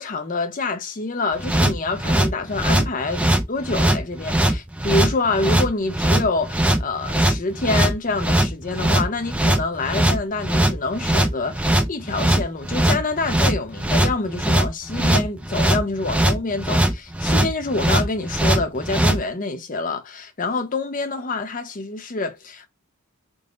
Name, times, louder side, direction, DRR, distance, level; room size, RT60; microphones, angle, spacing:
voice 1, 0.0-22.7, left 3 dB, 40° left, 0.7 m, -26 dB
sound 1, 1.4-19.2, right 1 dB, 5° right, 0.3 m, -20 dB
3.9 x 2.1 x 3.6 m
head